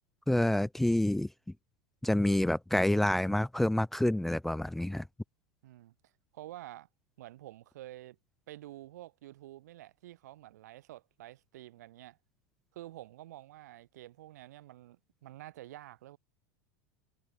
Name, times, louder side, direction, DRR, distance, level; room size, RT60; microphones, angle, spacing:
voice 1, 0.3-1.3 2.0-5.0, left 1 dB, ahead, 0.5 m, -28 dB
voice 2, 5.6-5.9 6.3-6.9 7.2-8.2 8.5-12.2 12.7-16.2, right 15 dB, 85° right, 7.3 m, -49 dB
supercardioid pair, 170°, 9 cm